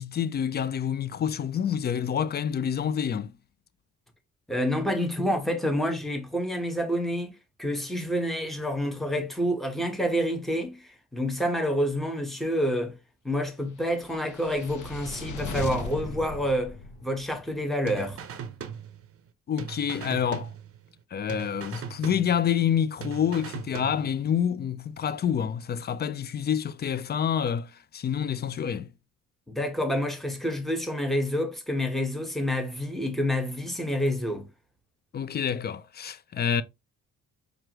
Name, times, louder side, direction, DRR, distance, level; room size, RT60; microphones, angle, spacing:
voice 1, 0.0-3.3 19.5-20.5 21.1-28.9 35.1-36.6, left 8 dB, 35° left, 0.4 m, -28 dB
voice 2, 4.5-7.3 7.6-10.8 11.1-13.0 13.2-16.8 17.0-18.2 29.5-34.5, equal, ahead, 1.0 m, -28 dB
sound 1, 14.0-17.5, left 3 dB, 80° left, 0.9 m, -37 dB
sound 2, 17.9-19.3 19.6-21.0 21.3-22.7 23.0-24.3, right 7 dB, 50° right, 0.6 m, -40 dB
4.5 x 2.5 x 2.9 m
cardioid pair, 90°, 30 cm